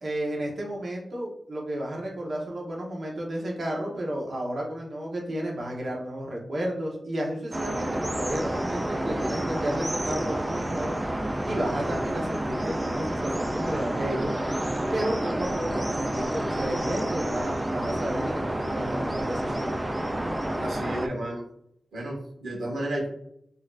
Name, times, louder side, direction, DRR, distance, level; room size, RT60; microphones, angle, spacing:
voice 1, 0.0-14.3 14.9-19.8, right 1 dB, 55° right, -2 dB, 0.9 m, -32 dB
sound 1, 7.5-21.1, right 1 dB, 20° right, 0.4 m, -29 dB
voice 2, 20.6-21.4 21.9-23.1, right 1 dB, 90° right, -1 dB, 1.0 m, -32 dB
4.3 x 2.6 x 2.4 m, 0.74 s
wide cardioid pair, 85°, 0 cm